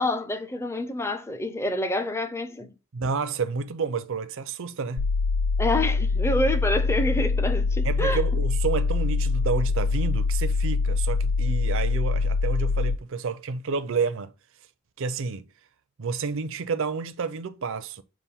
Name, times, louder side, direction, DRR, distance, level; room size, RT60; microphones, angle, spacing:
voice 1, 0.0-2.7 5.6-8.2, left 1 dB, 10° left, 0.5 m, -27 dB
voice 2, 2.9-5.1 7.8-14.3 15.0-15.5 16.0-18.0, right 5 dB, 60° right, 0.5 m, -30 dB
sound 1, 5.0-13.0, left 4 dB, 75° left, 0.4 m, -24 dB
6.8 x 2.6 x 5.6 m
head